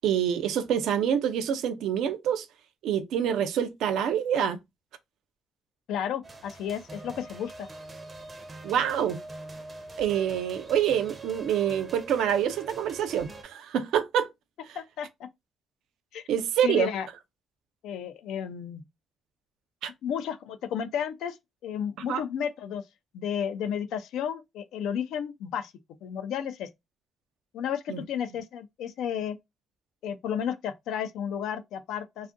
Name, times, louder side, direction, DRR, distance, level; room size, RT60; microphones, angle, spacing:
voice 1, 0.0-2.5 2.8-4.6 8.6-9.2 10.0-14.3 16.3-16.9 19.8-19.9 22.1-22.2 27.9-28.0, right 9 dB, 85° right, 0.4 m, -26 dB
voice 2, 5.9-7.7 14.7-15.1 16.1-16.2 16.6-17.1 17.8-18.8 20.0-21.4 21.6-22.8 23.1-25.7 26.0-26.7 27.5-29.4 30.0-32.3, left 8 dB, 85° left, 0.3 m, -32 dB
sound 1, 6.2-13.4, right 2 dB, 30° right, 0.5 m, -44 dB
2.5 x 2.3 x 2.4 m
cardioid pair, 90°, 0 cm